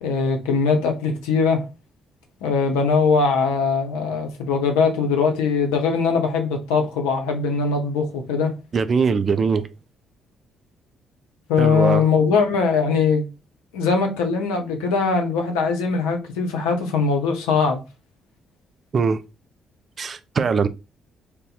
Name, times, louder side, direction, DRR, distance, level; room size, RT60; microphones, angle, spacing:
voice 1, 0.0-1.6 2.4-8.5 11.5-13.3 13.7-17.8, left 5 dB, 70° left, 0.7 m, -21 dB
voice 2, 8.7-9.7 11.6-12.1 18.9-19.2 20.0-20.7, right 5 dB, 40° right, 0.3 m, -21 dB
2.6 x 2.1 x 3.9 m
figure-of-eight pair, 40°, 0 cm